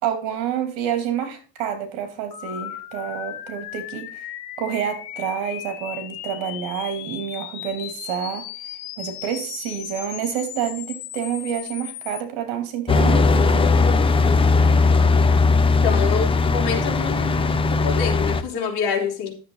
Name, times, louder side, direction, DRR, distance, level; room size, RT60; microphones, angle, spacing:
voice 1, 0.0-4.2 4.6-8.5 9.0-13.7, right 9 dB, 65° right, 8 dB, 2.9 m, -28 dB
sound 1, 2.3-12.2, left 13 dB, 80° left, 1.5 m, -36 dB
sound 2, 12.9-18.4, left 3 dB, 10° left, 0.5 m, -18 dB
voice 2, 15.8-19.3, left 6 dB, 50° left, 0 dB, 3.9 m, -26 dB
11.5 x 7.3 x 4.0 m, 0.39 s
cardioid pair, 150°, 49 cm